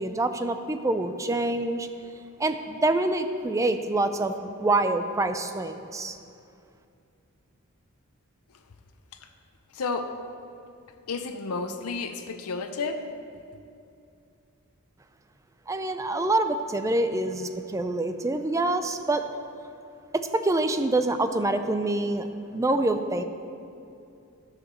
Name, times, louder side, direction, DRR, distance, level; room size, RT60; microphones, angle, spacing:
voice 1, 0.0-1.9 2.4-6.2 15.7-19.2 20.1-22.3 22.5-23.2, right 2 dB, 15° right, 8 dB, 0.4 m, -26 dB
voice 2, 9.7-10.1 11.1-13.0, left 4 dB, 80° left, 7 dB, 0.6 m, -31 dB
11.5 x 5.0 x 6.7 m, 2.5 s
head